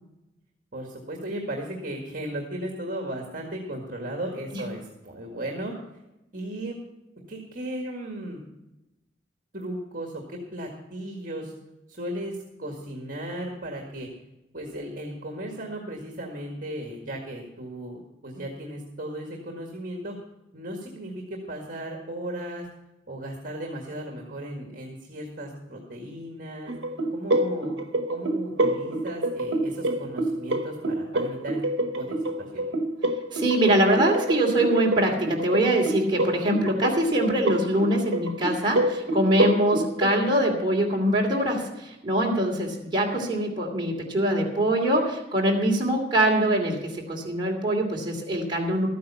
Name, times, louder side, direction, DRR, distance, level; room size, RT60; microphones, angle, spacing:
voice 1, 0.7-5.7 6.3-6.8 7.3-8.4 9.5-11.5 11.9-14.1 14.5-20.1 20.5-22.7 23.1-26.7 27.1-27.7 28.1-31.6 32.0-32.6 43.1-43.3, right 1 dB, 50° right, 1 dB, 1.9 m, -36 dB
sound 1, 26.7-40.3, right 1 dB, 90° right, 1.0 m, -28 dB
voice 2, 33.3-48.9, right 1 dB, 25° right, -2 dB, 2.7 m, -23 dB
13.0 x 9.4 x 5.5 m, 0.93 s
head